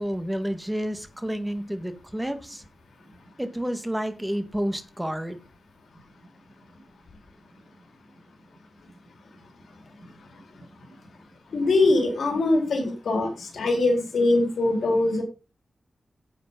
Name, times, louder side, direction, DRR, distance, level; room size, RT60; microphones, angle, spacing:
voice 1, 0.0-2.6 3.4-5.4, equal, 10° right, 9 dB, 1.8 m, -30 dB
voice 2, 11.5-15.2, left 2 dB, 80° left, 2 dB, 4.0 m, -22 dB
10.0 x 8.6 x 5.4 m, 0.32 s
wide cardioid pair, 120°, 0 cm